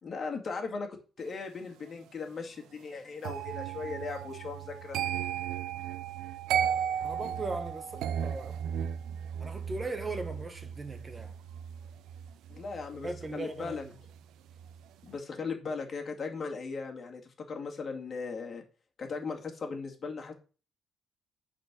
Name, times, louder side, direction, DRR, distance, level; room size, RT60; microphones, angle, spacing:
voice 1, 0.0-5.0 12.5-13.8 15.0-18.6 19.0-20.3, left 4 dB, 45° left, 2.3 m, -38 dB
sound 1, 3.2-14.2 14.5-14.9, right 9 dB, 85° right, 0.6 m, -35 dB
voice 2, 7.0-8.6 9.4-11.3 13.0-13.9, right 2 dB, 25° right, 1.6 m, -38 dB
8.9 x 4.5 x 6.2 m
cardioid pair, 90°, 0 cm